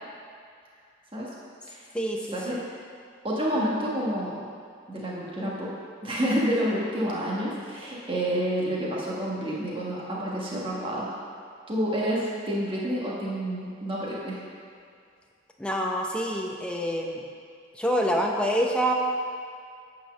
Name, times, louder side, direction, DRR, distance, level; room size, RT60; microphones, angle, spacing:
voice 1, 1.9-2.6 15.6-17.2 17.7-18.9, equal, 5° left, 0 dB, 0.7 m, -26 dB
voice 2, 3.2-4.5 4.9-5.7 6.0-11.1 11.7-14.4, equal, 25° right, -5 dB, 1.4 m, -29 dB
9.3 x 4.7 x 6.9 m, 2.3 s
head